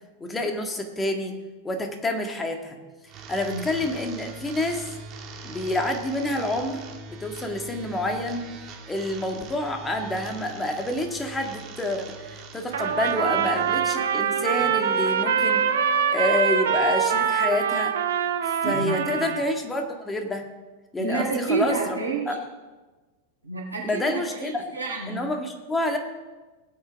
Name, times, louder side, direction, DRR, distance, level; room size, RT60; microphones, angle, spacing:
voice 1, 0.2-1.3 1.6-2.8 3.3-4.9 5.4-6.8 7.1-8.5 8.9-15.6 16.1-17.9 18.5-20.4 20.9-22.0 22.3-22.4 23.8-24.6 25.1-26.0, left 1 dB, 15° left, 4 dB, 1.9 m, -28 dB
sound 1, 3.1-13.8, right 3 dB, 35° right, 1.8 m, -42 dB
Wind instrument woodwind instrument, 12.7-17.0, left 1 dB, 5° right, 2.7 m, -41 dB
Trumpet, 12.7-19.5, right 7 dB, 65° right, 1.2 m, -24 dB
voice 2, 18.6-19.0 21.0-22.4 23.4-25.2, right 4 dB, 85° right, -4 dB, 4.1 m, -29 dB
19.0 x 8.1 x 3.6 m, 1.2 s
figure-of-eight pair, 95°, 0 cm